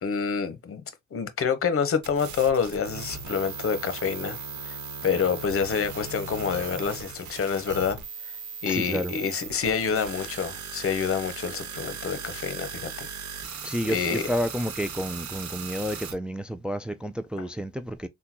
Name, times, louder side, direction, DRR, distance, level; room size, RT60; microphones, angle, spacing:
voice 1, 0.0-0.8 1.1-4.4 4.6-8.0 8.6-13.1 13.9-14.3, left 6 dB, 50° left, 0.9 m, -27 dB
sound 1, 2.0-16.1, right 6 dB, 75° right, 1.0 m, -38 dB
voice 2, 8.7-9.1 13.6-18.1, equal, 5° right, 0.3 m, -30 dB
3.6 x 2.3 x 2.8 m
cardioid pair, 85°, 29 cm